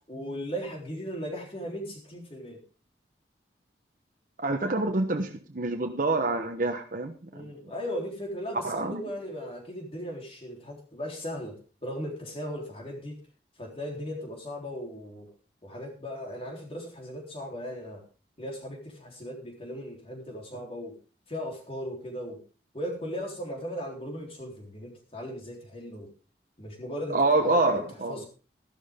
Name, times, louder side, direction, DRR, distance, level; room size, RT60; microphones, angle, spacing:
voice 1, 0.1-2.6 7.3-13.1 13.6-15.3 15.6-18.0 18.4-20.9 21.3-22.4 22.7-26.1 26.6-27.8 28.1-28.3, equal, 35° left, 1 dB, 3.8 m, -37 dB
voice 2, 4.4-7.1 8.6-9.0 27.1-28.2, right 2 dB, 50° right, 4 dB, 1.2 m, -26 dB
13.5 x 12.0 x 3.7 m, 0.35 s
head